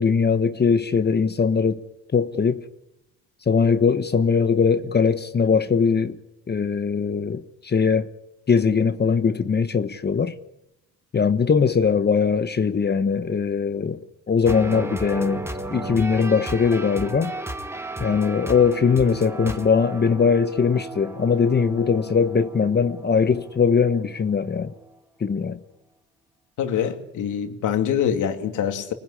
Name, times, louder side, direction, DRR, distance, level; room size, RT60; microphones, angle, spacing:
voice 1, 0.0-1.8 2.1-2.6 3.5-6.2 6.5-8.1 8.5-10.3 11.1-14.0 14.3-15.4 15.7-17.3 18.0-24.7 25.2-25.6, left 5 dB, 35° left, 1.2 m, -21 dB
sound 1, 14.4-25.0, right 1 dB, 10° right, 2.1 m, -34 dB
voice 2, 26.6-28.9, left 8 dB, 80° left, 2.6 m, -24 dB
25.0 x 20.0 x 9.9 m
cardioid pair, 90°, 30 cm